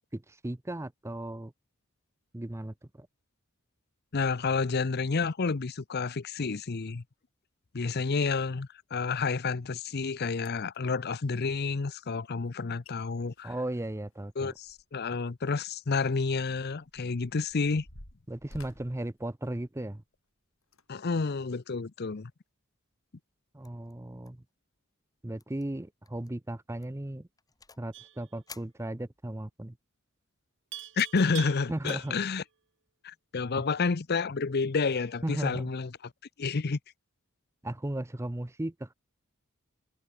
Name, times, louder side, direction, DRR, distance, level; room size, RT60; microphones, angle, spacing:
voice 1, 0.1-1.5 2.3-3.1 13.4-14.5 18.3-20.0 23.5-24.4 25.2-27.3 27.8-29.8 31.7-32.1 33.5-33.6 35.2-35.7 37.6-38.9, right 1 dB, 15° right, 0.6 m, -36 dB
voice 2, 4.1-7.0 7.7-13.5 14.4-17.9 20.9-22.3 31.0-32.4 33.0-35.9 36.4-36.8, left 4 dB, 50° left, 0.7 m, -30 dB
sound 1, 9.9-10.0 10.4-10.8 12.5-12.6 12.8-13.0 13.3-15.1 15.4-15.6 16.3-20.0 20.6-20.8 21.5-21.6, left 1 dB, 80° left, 6.8 m, -53 dB
sound 2, 23.6-23.9 24.2-24.5 24.7-24.8 25.4-25.6 26.0-26.3 26.8-27.9 28.5-29.4, left 5 dB, 20° left, 5.5 m, -53 dB
Livestock farm animals working animals, 27.9-28.3 30.7-32.4, right 13 dB, 60° right, 1.5 m, -44 dB
head